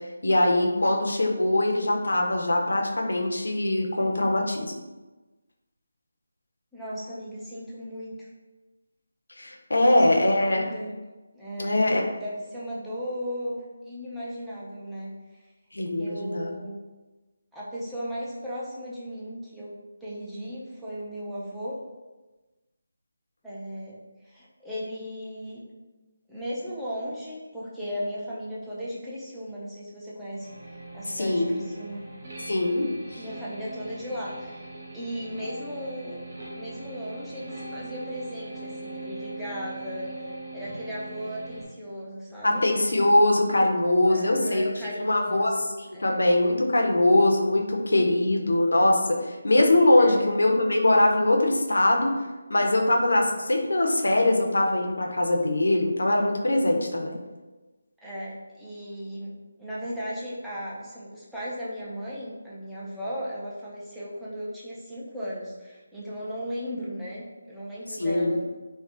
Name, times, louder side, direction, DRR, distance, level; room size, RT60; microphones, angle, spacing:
voice 1, 0.2-4.7 9.4-10.6 11.6-12.1 15.7-16.5 31.1-31.5 32.5-33.2 42.4-44.7 45.0-45.5 46.0-52.2 52.5-57.2 68.0-68.4, left 1 dB, 80° left, 1 dB, 0.5 m, -22 dB
voice 2, 6.7-8.3 9.8-10.9 11.3-15.1 16.0-16.8 17.5-19.7 20.0-21.8 23.4-24.0 24.2-25.6 26.3-30.5 30.9-32.0 33.1-34.6 34.9-36.2 36.5-42.6 44.1-46.2 50.0-50.3 58.0-59.3 59.6-68.4, equal, ahead, -10 dB, 0.5 m, -36 dB
sound 1, 30.3-41.6, right 2 dB, 40° right, 0.8 m, -40 dB
3.3 x 2.1 x 2.5 m, 1.2 s
figure-of-eight pair, 165°, 0 cm